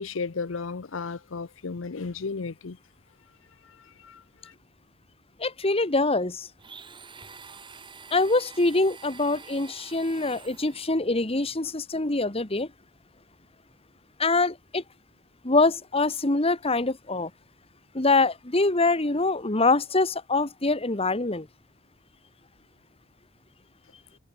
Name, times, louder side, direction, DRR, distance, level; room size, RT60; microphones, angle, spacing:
voice 1, 0.0-2.8 4.0-4.2, left 4 dB, 65° left, 0.7 m, -33 dB
voice 2, 5.4-6.5 8.1-12.7 14.2-14.8 15.4-17.3 17.9-21.5, left 3 dB, 30° left, 1.6 m, -24 dB
Domestic sounds home sounds, 6.6-11.0, right 5 dB, 25° right, 3.3 m, -47 dB
head